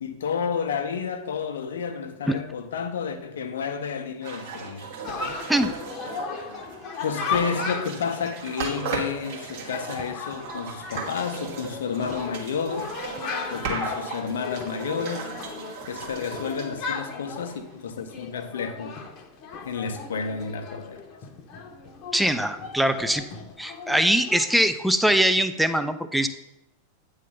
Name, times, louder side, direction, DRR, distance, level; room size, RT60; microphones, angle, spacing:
voice 1, 0.0-4.9 7.0-12.9 13.5-15.3 15.9-19.0 19.6-21.0, left 6 dB, 65° left, 0.7 m, -31 dB
sound 1, 4.2-17.7, right 5 dB, 50° right, 1.4 m, -37 dB
Chatter, 5.0-24.6, left 5 dB, 35° left, 0.9 m, -36 dB
voice 2, 22.1-23.2 23.6-26.3, right 1 dB, ahead, 0.5 m, -22 dB
9.2 x 3.2 x 5.5 m
figure-of-eight pair, 90°, 0 cm